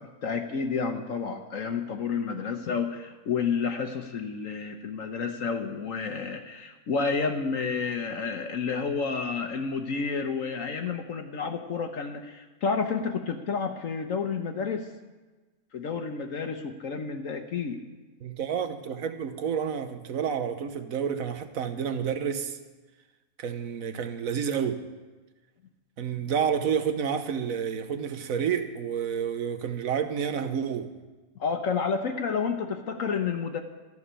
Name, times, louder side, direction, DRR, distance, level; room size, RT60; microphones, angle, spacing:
voice 1, 0.2-14.9 15.7-17.8 31.4-33.6, left 5 dB, 60° left, 1.2 m, -30 dB
voice 2, 18.2-22.6 23.4-24.8 26.0-30.9, right 7 dB, 60° right, 1.3 m, -29 dB
14.0 x 7.2 x 10.0 m
omnidirectional pair, 1.6 m